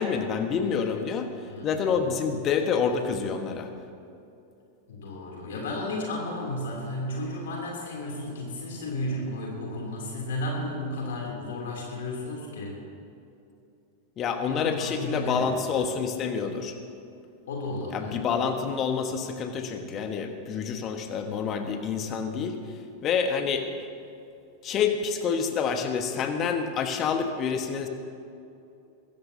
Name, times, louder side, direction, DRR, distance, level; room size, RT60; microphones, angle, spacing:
voice 1, 0.0-1.3 1.6-3.7 14.2-16.8 17.9-23.7 24.6-27.9, left 6 dB, 30° left, 6 dB, 1.4 m, -28 dB
voice 2, 1.5-1.9 4.9-12.7 14.5-15.5 17.5-18.2, left 1 dB, 60° left, -2 dB, 3.1 m, -33 dB
22.5 x 15.5 x 2.9 m, 2.6 s
figure-of-eight pair, 90°, 0 cm